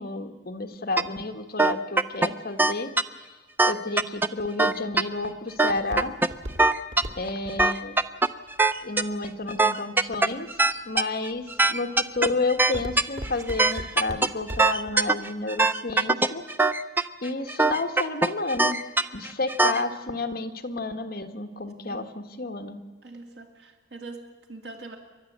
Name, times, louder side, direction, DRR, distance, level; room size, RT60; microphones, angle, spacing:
voice 1, 0.0-2.9 3.6-6.1 7.2-8.0 8.8-10.5 10.8-11.4 11.7-16.4 17.2-18.8 19.1-22.8, left 3 dB, 55° left, 6 dB, 1.5 m, -31 dB
sound 1, 1.0-1.1 1.6-2.3 2.6-3.0 3.6-4.3 4.6-5.0 5.6-6.3 6.6-7.0 7.5-9.0 9.5-19.8, right 3 dB, 10° right, 0.6 m, -21 dB
Walk footsteps, 4.6-9.8 10.4-10.8 11.3-11.7 12.0-14.9 15.2-15.3, equal, 90° right, 2.3 m, -38 dB
voice 2, 21.8-22.3 23.0-25.0, right 3 dB, 65° right, 3 dB, 2.4 m, -43 dB
29.5 x 12.0 x 8.2 m, 1.3 s
head